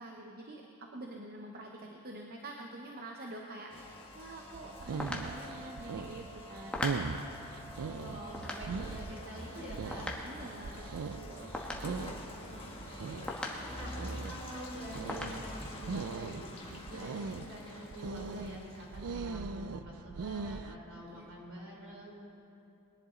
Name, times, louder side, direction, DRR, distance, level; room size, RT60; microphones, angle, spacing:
voice 1, 0.0-6.7 10.2-11.5 17.0-17.1 21.1-21.3, right 1 dB, 45° right, 1 dB, 0.9 m, -47 dB
Rain, 3.7-19.1, left 1 dB, 25° left, 1.4 m, -47 dB
sound 1, 4.5-20.7, right 4 dB, 80° right, 0.4 m, -40 dB
sound 2, 5.0-12.9 13.3-14.5 14.8-14.9 15.1-16.1, left 1 dB, 5° left, 1.3 m, -42 dB
voice 2, 7.9-10.1 12.4-13.4 13.7-14.0 14.2-22.1, equal, 60° right, -2 dB, 3.3 m, -47 dB
20.5 x 11.0 x 3.8 m, 2.8 s
head